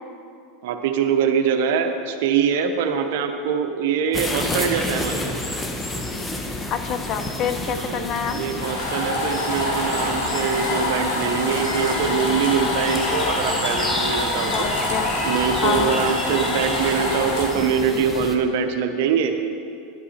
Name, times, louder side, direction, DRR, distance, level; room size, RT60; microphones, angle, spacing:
voice 1, 0.6-5.3 7.8-14.7 15.2-19.3, right 6 dB, 70° right, 6 dB, 0.8 m, -23 dB
sound 1, 4.1-18.4, left 1 dB, 15° left, 1.0 m, -30 dB
voice 2, 6.7-8.4 14.5-15.1 15.6-16.0, left 7 dB, 45° left, 9 dB, 0.7 m, -27 dB
sound 2, 8.5-17.5, left 1 dB, 75° left, 2.3 m, -26 dB
10.5 x 8.3 x 4.3 m, 2.5 s
hypercardioid pair, 110°, 0 cm